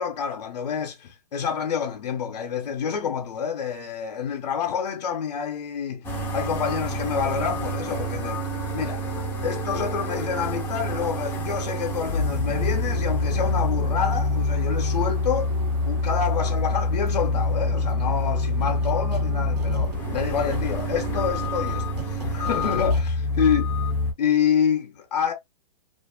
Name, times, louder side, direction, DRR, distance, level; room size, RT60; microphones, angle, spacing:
voice 1, 0.0-8.5 8.7-9.0 9.4-15.5 15.9-23.6 24.2-25.3, left 7 dB, 75° left, 0.7 m, -27 dB
sound 1, 6.0-24.1, left 2 dB, 10° left, 0.5 m, -26 dB
sound 2, 12.4-21.6, right 7 dB, 45° right, 0.6 m, -40 dB
sound 3, 18.6-19.3 19.6-23.1, right 3 dB, 70° right, 1.0 m, -39 dB
2.5 x 2.3 x 2.2 m
hypercardioid pair, 140°, 21 cm